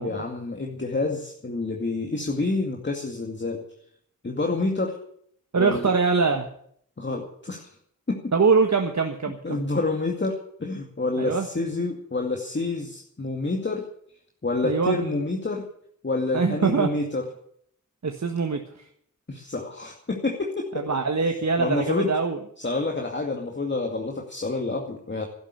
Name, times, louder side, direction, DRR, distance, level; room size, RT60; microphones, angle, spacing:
voice 1, 0.0-3.6 4.2-4.9 5.6-5.9 7.0-7.7 8.1-8.2 9.4-13.8 14.4-15.6 16.0-17.2 19.3-20.7 21.6-22.1 22.6-25.3, left 3 dB, 35° left, 1 dB, 2.3 m, -28 dB
voice 2, 5.5-6.5 8.3-9.6 11.2-11.5 14.6-15.0 16.3-16.9 18.0-18.9 20.7-22.4, right 4 dB, 55° right, 4 dB, 1.5 m, -23 dB
12.5 x 11.5 x 8.5 m, 0.66 s
cardioid pair, 55°, 33 cm